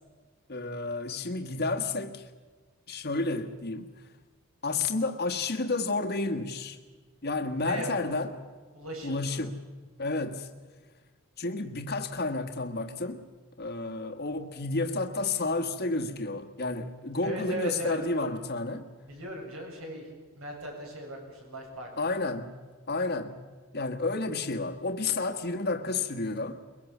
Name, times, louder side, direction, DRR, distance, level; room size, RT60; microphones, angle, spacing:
voice 1, 0.5-2.2 2.9-3.9 4.6-6.8 7.2-8.3 9.0-9.6 10.0-10.5 11.4-13.2 13.6-18.9 22.0-22.6 22.9-23.4 23.7-26.6, left 3 dB, 50° left, 1.5 m, -31 dB
voice 2, 7.6-8.0 8.7-9.5 10.0-10.2 17.2-18.3 19.0-20.1 20.4-22.1, equal, 75° right, 7.2 m, -38 dB
23.0 x 22.0 x 7.3 m
head